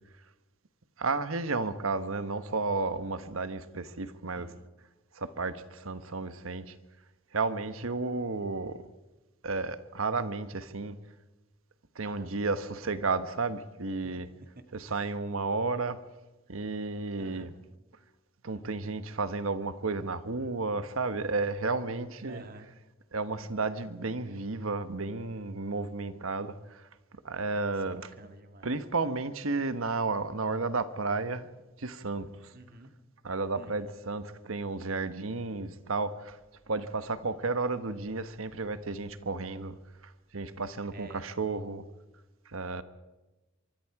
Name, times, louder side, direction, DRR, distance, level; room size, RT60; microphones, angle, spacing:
voice 1, 1.0-4.5 5.1-6.7 7.3-8.8 9.4-11.0 11.9-14.3 14.7-16.0 16.5-17.5 18.4-22.4 23.1-26.8 27.2-28.1 28.6-31.5 31.8-32.5 33.2-36.4 36.7-39.8 40.0-41.8 42.5-42.8, right 3 dB, 85° right, 1.2 m, -32 dB
voice 2, 12.0-12.3 14.0-15.1 17.2-17.5 22.3-22.7 28.0-28.7 32.5-32.9 33.6-33.9 40.9-41.3, right 2 dB, 45° right, 2.1 m, -51 dB
25.0 x 24.0 x 4.8 m
head